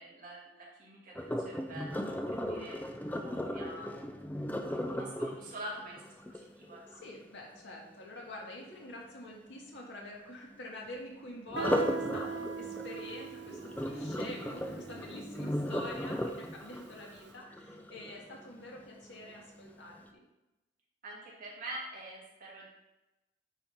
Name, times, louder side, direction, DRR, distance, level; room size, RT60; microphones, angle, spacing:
voice 1, 0.0-2.2 2.5-3.9 4.7-6.8 21.0-22.7, right 1 dB, 50° right, -5 dB, 2.2 m, -46 dB
Sink (filling or washing), 1.2-7.1 11.5-18.5 19.0-19.4 19.9-20.0, equal, 10° left, 0.5 m, -36 dB
voice 2, 6.9-20.2, left 1 dB, 85° left, -2 dB, 1.7 m, -46 dB
Guitar, 11.6-17.0, right 5 dB, 70° right, 0.5 m, -42 dB
9.6 x 3.7 x 4.4 m, 0.96 s
head